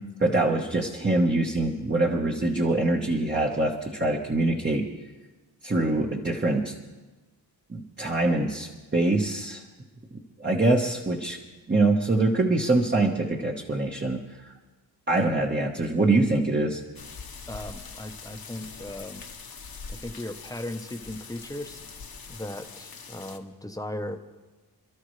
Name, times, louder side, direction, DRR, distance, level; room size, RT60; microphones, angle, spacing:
voice 1, 0.2-4.8 5.6-6.7 7.7-9.6 10.4-11.4 11.7-14.2 15.1-16.8, right 2 dB, 25° right, -1 dB, 1.3 m, -24 dB
sound 1, 17.0-23.4, left 5 dB, 60° left, 1.3 m, -43 dB
voice 2, 17.5-19.2 19.9-21.8 22.3-24.2, left 1 dB, 10° left, 7 dB, 1.0 m, -37 dB
28.0 x 12.5 x 3.3 m, 1.2 s
wide cardioid pair, 85°, 40 cm